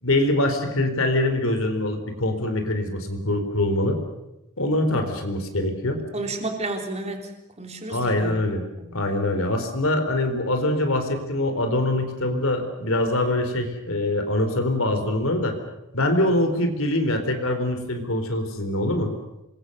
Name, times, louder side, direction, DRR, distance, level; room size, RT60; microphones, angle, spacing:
voice 1, 0.0-4.0 4.6-6.0 7.9-8.6 8.9-15.6 15.9-19.1, left 1 dB, 65° left, 7 dB, 4.0 m, -24 dB
voice 2, 6.1-9.0, right 2 dB, 30° right, 3 dB, 3.6 m, -32 dB
27.5 x 23.0 x 6.7 m, 0.94 s
head